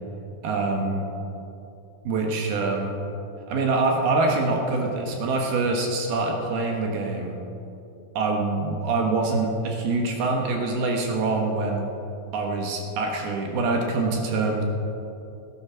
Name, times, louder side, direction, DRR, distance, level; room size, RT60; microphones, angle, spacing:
voice 1, 0.4-1.1 2.0-3.0 3.5-7.4 8.2-11.9 12.3-14.6, right 3 dB, 70° right, 1 dB, 3.0 m, -25 dB
17.5 x 10.0 x 6.1 m, 2.8 s
omnidirectional pair, 5.0 m